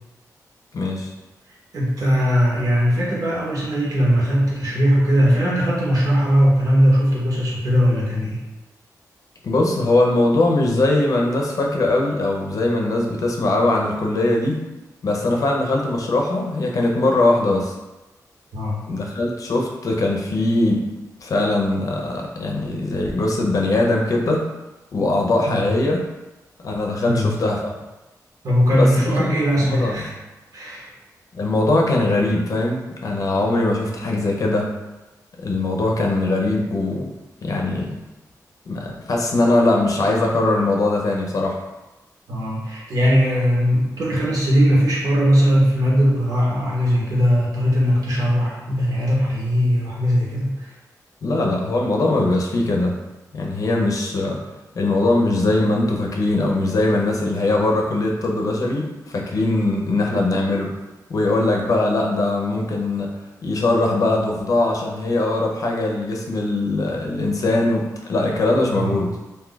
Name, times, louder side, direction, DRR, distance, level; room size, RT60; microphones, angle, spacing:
voice 1, 0.7-1.1 9.4-14.6 15.0-17.7 18.9-20.8 21.2-24.5 24.9-26.0 26.6-27.7 28.7-29.3 29.6-30.1 31.3-34.7 35.4-37.1 37.4-38.0 38.7-41.6 51.2-52.9 53.3-54.4 54.7-60.7 61.1-63.1 63.4-69.1, left 2 dB, 60° left, 0 dB, 0.5 m, -21 dB
voice 2, 1.7-8.4 18.5-18.8 25.5-25.7 27.0-27.3 28.4-30.1 30.5-30.9 42.3-50.7 68.7-69.0, equal, 70° right, -5 dB, 1.1 m, -19 dB
2.6 x 2.3 x 3.8 m, 1.1 s
wide cardioid pair, 110°, 7 cm